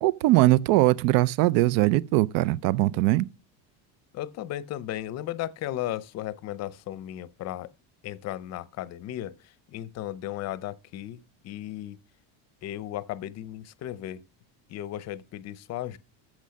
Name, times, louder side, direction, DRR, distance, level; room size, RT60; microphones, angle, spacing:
voice 1, 0.0-3.3, right 17 dB, 75° right, 0.7 m, -21 dB
voice 2, 4.1-7.7 8.0-12.0 12.6-14.2 14.7-16.0, left 13 dB, 35° left, 0.6 m, -35 dB
14.0 x 6.3 x 6.4 m
cardioid pair, 175°, 49 cm